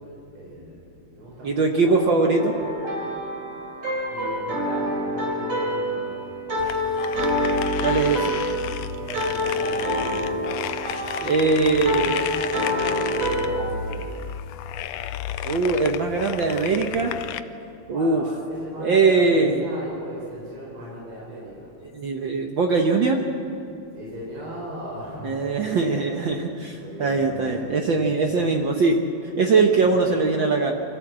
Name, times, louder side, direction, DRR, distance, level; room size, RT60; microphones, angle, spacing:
voice 1, 0.0-2.3 4.1-6.3 8.0-8.6 9.0-10.9 11.2-14.2 17.9-21.7 23.9-26.1 26.7-28.0 28.3-28.5 29.8-30.2, equal, 40° right, -5 dB, 5.8 m, -37 dB
voice 2, 1.4-2.5 7.8-8.3 11.3-12.2 15.4-17.1 17.9-18.2 18.8-19.6 21.9-23.2 25.2-29.0 29.4-30.7, right 4 dB, 75° right, 2 dB, 1.1 m, -21 dB
sound 1, 2.3-13.6, equal, 60° right, 4.5 m, -27 dB
sound 2, 6.6-17.4, left 10 dB, 85° left, 2.2 m, -33 dB
25.0 x 14.0 x 7.5 m, 2.7 s
omnidirectional pair, 3.7 m